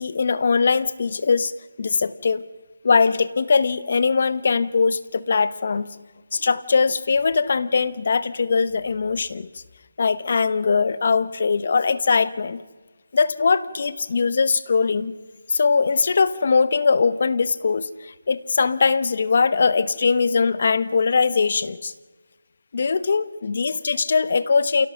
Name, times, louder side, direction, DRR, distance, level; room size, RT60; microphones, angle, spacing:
voice 1, 0.0-1.5 1.8-2.4 2.8-5.9 6.3-9.5 10.0-12.6 13.1-15.1 15.5-21.9 22.7-24.9, left 5 dB, 50° left, 16 dB, 1.0 m, -21 dB
29.0 x 17.0 x 6.3 m, 1.3 s
figure-of-eight pair, 165°, 0 cm